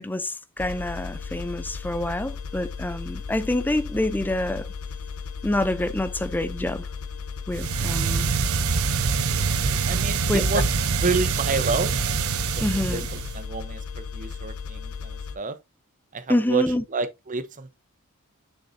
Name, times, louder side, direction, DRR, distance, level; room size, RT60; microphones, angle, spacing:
voice 1, 0.0-4.7 5.4-6.9 7.5-8.3 9.5-9.6 10.3-10.4 12.6-13.1 16.3-16.8, left 1 dB, 10° left, 0.5 m, -27 dB
sound 1, 0.6-15.4, left 5 dB, 75° left, 0.7 m, -36 dB
sound 2, 7.5-13.4, right 5 dB, 75° right, 0.7 m, -25 dB
voice 2, 9.8-10.7 11.0-12.0 12.6-15.6 16.1-16.6 16.9-17.7, right 4 dB, 35° right, 0.8 m, -29 dB
6.4 x 6.4 x 2.6 m
head